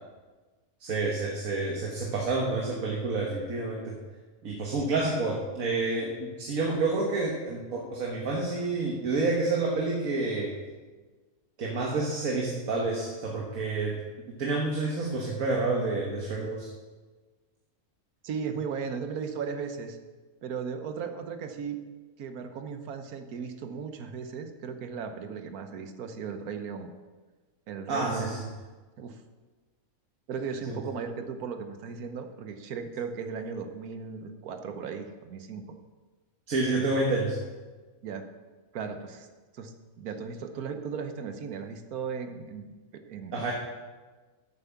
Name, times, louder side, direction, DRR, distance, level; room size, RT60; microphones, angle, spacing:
voice 1, 0.8-4.0 4.4-10.5 11.6-14.0 14.3-16.7 27.9-28.4 30.7-30.8 36.5-37.4 43.3-43.5, right 3 dB, 70° right, -1 dB, 1.6 m, -29 dB
voice 2, 18.2-20.0 20.4-21.8 22.2-26.9 27.7-28.4 29.0-29.2 30.3-35.6 38.0-38.3 38.7-39.3 39.5-39.7 40.0-43.5, right 6 dB, 85° right, 7 dB, 1.4 m, -36 dB
8.3 x 7.2 x 6.9 m, 1.3 s
omnidirectional pair, 1.5 m